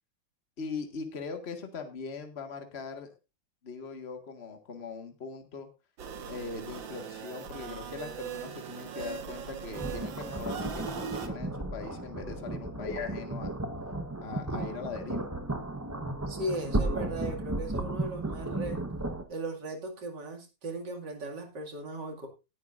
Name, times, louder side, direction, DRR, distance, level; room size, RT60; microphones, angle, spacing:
voice 1, 0.6-3.1 3.6-5.7 6.3-13.5 14.2-15.3, left 5 dB, 35° left, 5 dB, 1.8 m, -40 dB
sound 1, 6.0-11.3, right 7 dB, 80° right, 2.1 m, -40 dB
sound 2, 9.7-19.2, right 2 dB, 15° right, 0.7 m, -34 dB
voice 2, 16.3-18.8 19.3-22.3, right 1 dB, 60° right, 2 dB, 3.0 m, -37 dB
18.0 x 10.5 x 2.5 m, 0.27 s
omnidirectional pair, 2.1 m